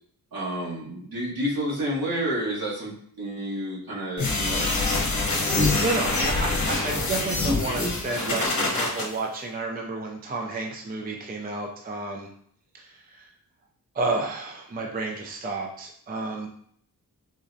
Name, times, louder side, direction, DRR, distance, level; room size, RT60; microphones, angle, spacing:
voice 1, 0.3-2.9 3.2-4.7, equal, 65° right, -6 dB, 1.3 m, -29 dB
sound 1, 4.2-9.0, left 3 dB, 50° left, 0.9 m, -25 dB
voice 2, 5.8-12.3 12.7-13.3 13.9-16.5, right 3 dB, 25° right, 1 dB, 0.4 m, -31 dB
3.8 x 2.1 x 2.6 m, 0.64 s
cardioid pair, 70°, 38 cm